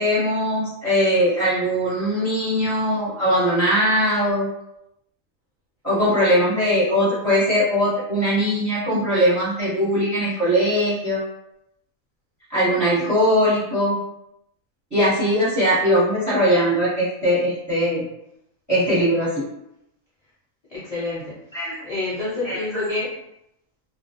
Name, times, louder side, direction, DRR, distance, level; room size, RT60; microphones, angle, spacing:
voice 1, 0.0-4.5 5.8-11.2 12.5-14.0 14.9-18.0 18.7-19.4 21.5-21.8 22.4-22.8, equal, 15° right, -9 dB, 0.8 m, -20 dB
voice 2, 20.7-23.1, left 2 dB, 40° left, -10 dB, 0.6 m, -28 dB
2.3 x 2.0 x 2.7 m, 0.81 s
omnidirectional pair, 1.4 m